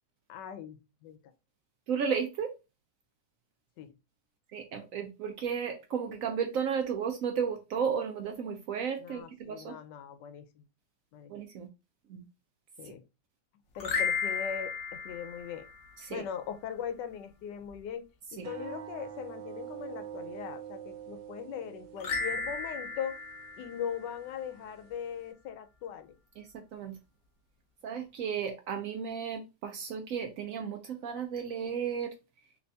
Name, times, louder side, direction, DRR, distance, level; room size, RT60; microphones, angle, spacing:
voice 1, 0.3-1.2 3.8-3.9 9.0-10.6 11.1-11.3 12.8-13.0 13.8-15.7 16.1-18.1 18.3-23.2 23.6-26.1, left 8 dB, 85° left, 1.2 m, -40 dB
voice 2, 1.9-2.5 4.5-9.7 11.3-11.7 12.1-12.3 12.8-12.9 16.0-16.2 18.4-18.5 26.4-27.0 27.8-32.1, right 7 dB, 70° right, 0.8 m, -34 dB
sound 1, 13.7-16.2 22.0-24.6, left 5 dB, 55° left, 1.0 m, -35 dB
sound 2, 18.4-25.3, right 10 dB, 90° right, 1.4 m, -46 dB
3.3 x 3.3 x 2.6 m
omnidirectional pair, 1.8 m